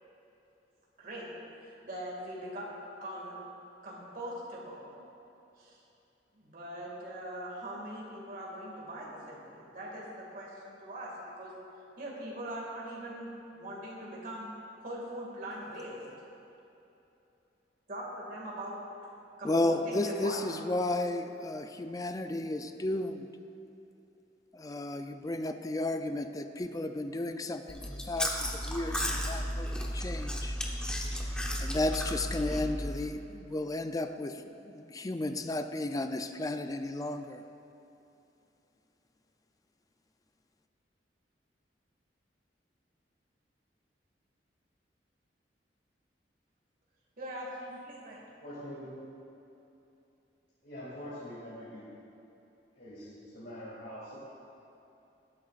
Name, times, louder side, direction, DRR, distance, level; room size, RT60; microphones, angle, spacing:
voice 1, 1.0-3.4 3.8-5.0 5.6-5.8 6.3-11.6 12.0-14.5 14.8-16.0 17.9-18.8 19.4-20.4 47.2-48.2, right 1 dB, 50° right, -4 dB, 2.1 m, -41 dB
voice 2, 19.4-23.3 24.5-30.6 31.6-37.4, left 2 dB, 20° left, 8 dB, 0.4 m, -33 dB
Chewing mastication, 27.7-33.0, equal, 5° left, 0.8 m, -34 dB
voice 3, 48.4-48.9 50.6-51.9 52.8-54.2, equal, 65° left, -9 dB, 2.4 m, -44 dB
18.5 x 8.7 x 2.5 m, 2.9 s
head